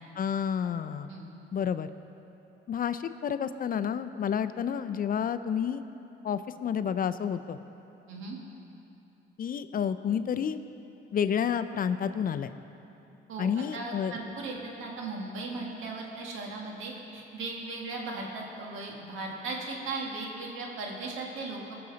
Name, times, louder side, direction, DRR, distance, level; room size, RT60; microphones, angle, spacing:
voice 1, 0.2-1.1 1.5-1.9 2.7-5.8 6.2-7.6 9.4-10.6 11.1-12.5 13.4-14.1, left 8 dB, 45° left, 12 dB, 0.5 m, -30 dB
voice 2, 8.1-8.4 13.3-21.8, right 3 dB, 85° right, -1 dB, 1.8 m, -37 dB
19.5 x 6.9 x 4.0 m, 2.9 s
cardioid pair, 90°, 20 cm